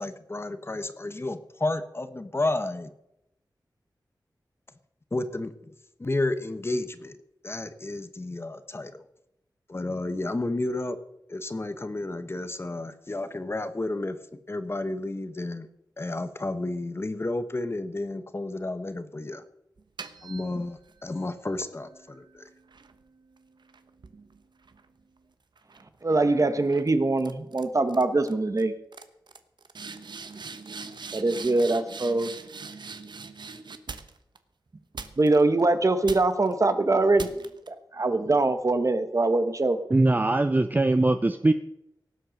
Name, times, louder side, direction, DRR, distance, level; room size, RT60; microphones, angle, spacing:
voice 1, 0.0-2.9 5.1-5.5 6.0-7.1 7.4-8.9 9.7-11.0 11.3-14.2 14.5-15.7 16.0-19.4 20.2-21.9, left 2 dB, 35° left, 11 dB, 1.1 m, -31 dB
sound 1, 19.8-21.0 21.6-25.2 25.6-26.0 26.7-26.9 27.2-27.6 27.9-28.3 28.6-28.7 28.9-34.4 34.9-35.6 36.0-36.5 37.2-37.7, right 4 dB, 75° right, 1.1 m, -42 dB
voice 2, 26.0-28.7 31.1-32.3 35.2-37.3 37.7-39.8, right 2 dB, 45° right, 10 dB, 1.3 m, -23 dB
voice 3, 39.9-41.5, right 2 dB, 25° right, 10 dB, 0.6 m, -21 dB
18.0 x 7.8 x 6.5 m, 0.83 s
wide cardioid pair, 90°, 8 cm